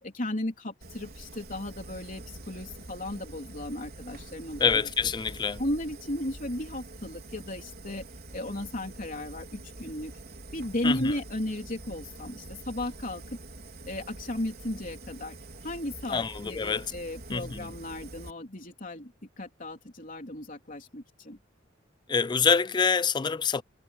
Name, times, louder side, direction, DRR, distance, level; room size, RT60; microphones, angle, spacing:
voice 1, 0.0-4.7 5.6-8.1 8.3-10.1 10.5-13.4 13.9-15.4 15.6-21.4, left 1 dB, 45° left, 3.5 m, -35 dB
Fire, 0.8-18.3, right 2 dB, 55° right, 4.0 m, -45 dB
voice 2, 4.6-5.6 10.8-11.1 16.1-16.9 17.3-17.7 22.1-23.6, left 5 dB, 25° left, 0.3 m, -26 dB
head